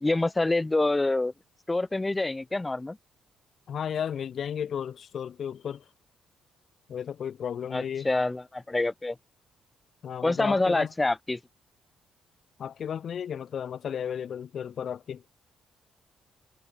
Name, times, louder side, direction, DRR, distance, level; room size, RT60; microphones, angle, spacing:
voice 1, 0.0-1.3 1.7-3.0 7.7-9.2 10.2-11.4, left 2 dB, 15° left, 0.4 m, -26 dB
voice 2, 3.7-5.8 6.9-8.1 10.0-10.9 12.6-15.2, left 8 dB, 60° left, 2.8 m, -33 dB
cardioid pair, 90°, 0 cm